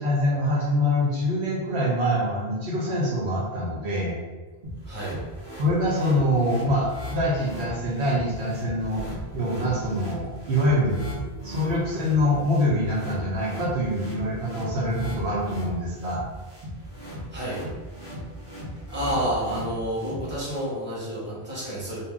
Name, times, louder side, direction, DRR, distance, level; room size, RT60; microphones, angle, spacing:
voice 1, 0.0-4.2 5.6-9.1 9.3-11.0 11.4-16.2, equal, 80° right, -5 dB, 1.1 m, -25 dB
sound 1, 4.6-20.6, equal, 55° right, 1.2 m, -38 dB
voice 2, 4.8-5.2 8.9-9.0 11.4-11.5 16.8-16.9 17.3-17.6 18.9-22.0, equal, 10° right, -7 dB, 1.0 m, -30 dB
2.7 x 2.7 x 3.6 m, 1.3 s
omnidirectional pair, 1.1 m